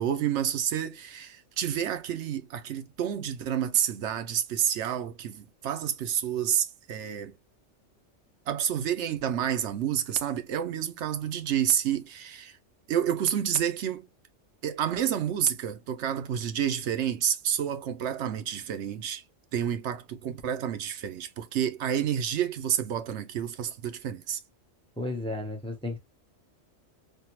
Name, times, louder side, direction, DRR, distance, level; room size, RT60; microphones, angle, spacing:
voice 1, 0.0-7.3 8.5-12.6 12.9-14.1 14.6-19.2 19.5-24.4, right 9 dB, 75° right, 0.9 m, -29 dB
voice 2, 25.0-26.0, left 2 dB, 5° left, 0.5 m, -33 dB
3.5 x 2.1 x 2.9 m
omnidirectional pair, 1.2 m